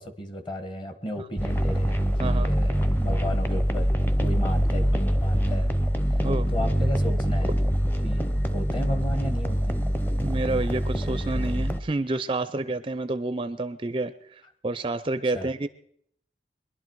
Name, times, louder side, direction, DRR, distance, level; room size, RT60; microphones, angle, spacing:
voice 1, 0.0-5.7 6.1-6.2 6.5-7.5 8.0-9.8 15.3-15.5, equal, 25° left, 8 dB, 1.4 m, -34 dB
sound 1, 1.4-11.8, equal, 10° left, 0.8 m, -24 dB
voice 2, 2.2-2.5 6.2-6.5 10.2-14.1 14.6-15.7, right 2 dB, 30° right, 13 dB, 0.5 m, -29 dB
22.5 x 11.5 x 4.7 m, 0.67 s
head